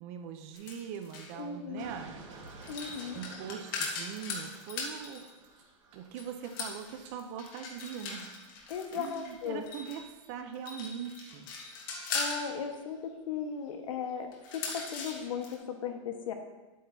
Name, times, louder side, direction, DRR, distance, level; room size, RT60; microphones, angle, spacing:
voice 1, 0.0-2.2 3.1-5.3 5.9-8.4 8.9-11.5, right 8 dB, 25° right, 7 dB, 0.5 m, -41 dB
sound 1, 0.5-1.4 2.4-5.3 6.1-10.0 10.5-12.5 14.3-15.5, left 4 dB, 40° left, 1.3 m, -39 dB
voice 2, 1.4-1.9 2.7-3.2 8.7-9.6 12.1-16.3, left 7 dB, 75° left, 4 dB, 1.2 m, -37 dB
sound 2, 1.8-7.2, right 4 dB, 60° right, 1.7 m, -51 dB
9.8 x 8.3 x 2.7 m, 1.2 s
supercardioid pair, 180°, 17 cm